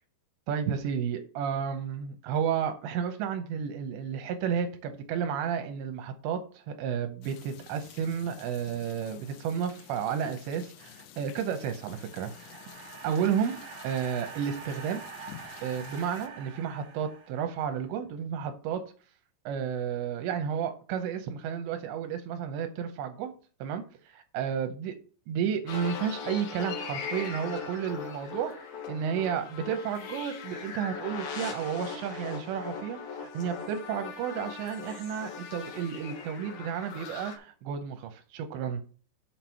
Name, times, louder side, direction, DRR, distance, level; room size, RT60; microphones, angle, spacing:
voice 1, 0.5-12.6 13.0-15.4 15.6-18.8 19.5-23.3 23.6-24.9 25.3-38.9, right 8 dB, 85° right, 3.0 m, -32 dB
sound 1, 7.2-16.3, left 11 dB, 80° left, 3.0 m, -51 dB
sound 2, 11.6-17.8, right 6 dB, 55° right, 1.9 m, -46 dB
sound 3, 25.7-37.4, left 6 dB, 65° left, 1.9 m, -39 dB
6.7 x 6.0 x 5.7 m
omnidirectional pair, 5.1 m